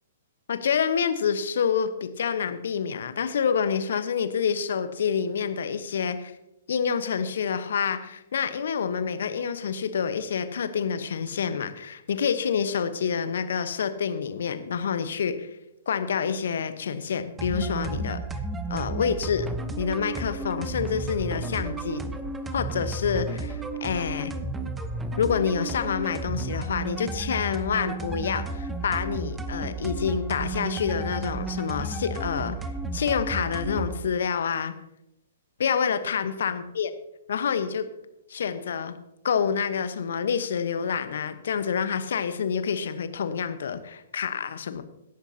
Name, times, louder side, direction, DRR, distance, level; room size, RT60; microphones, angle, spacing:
voice 1, 0.5-6.3 6.7-15.5 15.9-18.2 18.7-19.5 19.8-22.0 22.5-24.3 25.2-32.6 32.9-34.7 35.6-36.9 37.3-37.8 38.3-38.9 39.2-44.8, left 7 dB, 65° left, 11 dB, 1.1 m, -27 dB
sound 1, 17.4-34.0, right 3 dB, 10° right, 0.9 m, -33 dB
17.0 x 10.0 x 2.9 m, 0.85 s
figure-of-eight pair, 115°, 0 cm